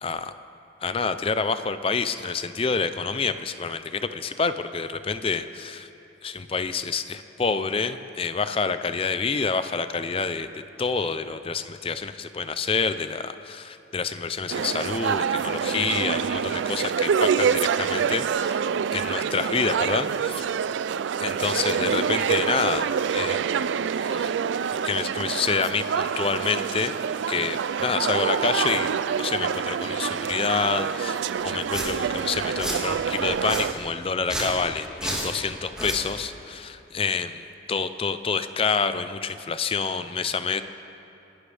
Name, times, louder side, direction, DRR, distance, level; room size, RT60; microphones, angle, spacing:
voice 1, 0.0-0.3 0.8-5.9 6.2-18.6 18.9-20.5 21.2-23.5 24.0-24.4 24.7-26.9 27.3-40.6, left 5 dB, 30° left, 11 dB, 0.5 m, -28 dB
sound 1, 14.5-33.7, right 7 dB, 80° right, 0.3 m, -26 dB
Domestic sounds home sounds, 31.3-31.4 31.7-31.9 32.3-32.8 33.3-33.6 34.2-34.5 35.0-35.3 35.7-36.0, right 1 dB, 5° right, 2.7 m, -30 dB
29.0 x 11.5 x 3.4 m, 2.8 s
head